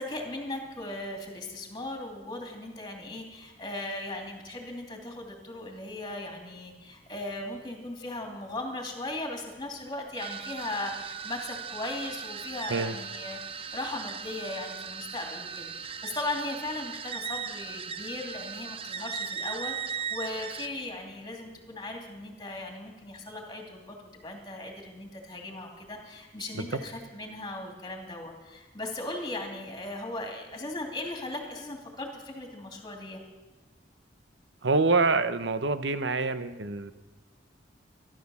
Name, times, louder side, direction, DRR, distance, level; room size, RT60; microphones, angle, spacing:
voice 1, 0.0-24.0 24.2-33.2, left 2 dB, 25° left, 2 dB, 2.8 m, -38 dB
sound 1, 10.1-20.7, right 7 dB, 30° right, 0.5 m, -38 dB
voice 2, 34.6-36.9, right 3 dB, 80° right, 12 dB, 0.8 m, -26 dB
14.0 x 12.0 x 7.1 m, 1.2 s
head